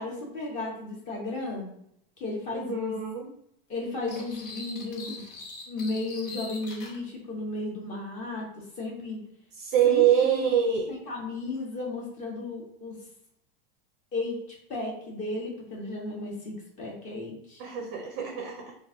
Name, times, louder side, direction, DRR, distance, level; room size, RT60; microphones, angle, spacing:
voice 1, 0.0-1.7 2.2-2.9 3.7-5.2 5.7-9.2 9.8-10.5 10.9-13.0 14.1-14.4 14.7-17.6, left 2 dB, 25° left, -2 dB, 1.1 m, -34 dB
voice 2, 2.5-3.3 9.5-11.0 17.6-18.7, right 9 dB, 35° right, 2 dB, 0.5 m, -25 dB
sound 1, 4.1-7.0, left 3 dB, 65° left, 1.0 m, -42 dB
3.0 x 2.5 x 3.8 m, 0.73 s
supercardioid pair, 165°, 30 cm